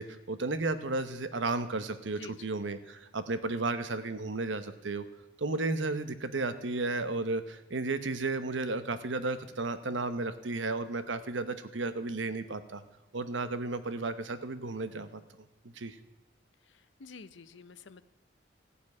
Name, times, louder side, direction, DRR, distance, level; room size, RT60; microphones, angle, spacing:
voice 1, 0.0-5.0 5.4-12.8 13.1-15.2 15.8-16.0, right 3 dB, 85° right, 11 dB, 1.0 m, -33 dB
voice 2, 16.7-18.0, left 4 dB, 80° left, 15 dB, 0.7 m, -49 dB
14.5 x 7.0 x 9.6 m, 1.1 s
head